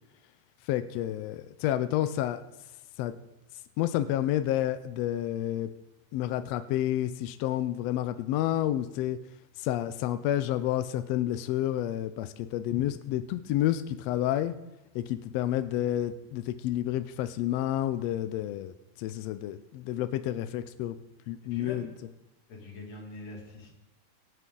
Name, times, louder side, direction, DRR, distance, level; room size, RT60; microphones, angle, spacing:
voice 1, 0.7-2.4 3.0-3.1 3.8-5.7 6.1-9.2 9.6-14.5 14.9-21.0 21.3-21.9, left 12 dB, 80° left, 12 dB, 1.5 m, -30 dB
voice 2, 21.5-21.9 22.5-23.7, left 2 dB, 60° left, 0 dB, 3.3 m, -43 dB
23.0 x 8.3 x 3.8 m, 0.98 s
omnidirectional pair, 3.4 m